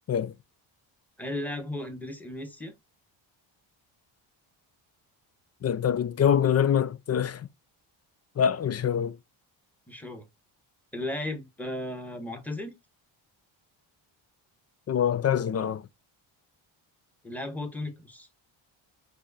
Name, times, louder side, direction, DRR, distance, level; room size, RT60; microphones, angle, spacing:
voice 1, 1.2-2.7 9.9-10.2 10.9-12.7 17.2-18.3, left 1 dB, 5° left, 1.3 m, -35 dB
voice 2, 5.6-7.5 8.4-9.2 14.9-15.8, left 8 dB, 35° left, 0.4 m, -25 dB
4.7 x 2.5 x 4.1 m
cardioid pair, 95°, 49 cm